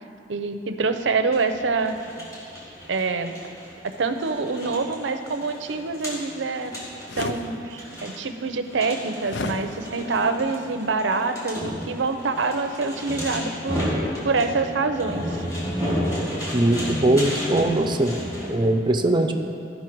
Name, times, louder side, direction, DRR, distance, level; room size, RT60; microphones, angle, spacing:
voice 1, 0.3-2.0 2.9-3.3 4.0-6.7 7.2-13.8 14.2-15.4, right 4 dB, 80° right, 8 dB, 0.6 m, -26 dB
sound 1, 1.3-18.5, equal, 20° left, 2.3 m, -32 dB
sound 2, 7.1-7.4 9.3-9.6, left 3 dB, 70° left, 0.6 m, -29 dB
voice 2, 16.5-18.2 18.5-19.3, right 1 dB, 25° right, 5 dB, 0.6 m, -20 dB
14.0 x 5.4 x 4.5 m, 2.6 s
head